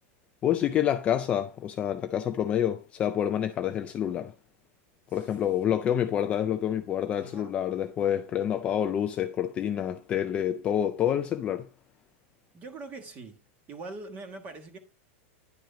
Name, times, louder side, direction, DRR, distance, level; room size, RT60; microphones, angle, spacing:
voice 1, 0.4-4.3 5.1-11.7, left 10 dB, 15° left, 0.4 m, -28 dB
voice 2, 7.2-7.5 12.5-13.4 13.7-14.8, right 3 dB, 20° right, 1.5 m, -42 dB
10.5 x 4.6 x 5.1 m
supercardioid pair, 175°, 7 cm